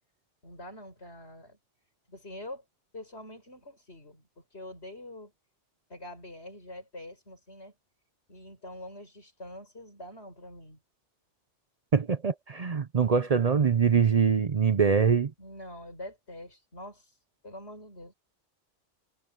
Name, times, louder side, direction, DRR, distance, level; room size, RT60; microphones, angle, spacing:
voice 1, 0.4-1.6 2.1-2.6 2.9-5.3 5.9-7.7 8.3-10.8 15.4-17.1 17.4-18.1, left 1 dB, 60° left, 6.9 m, -45 dB
voice 2, 11.9-15.3, right 6 dB, 40° right, 0.6 m, -23 dB
omnidirectional pair, 1.2 m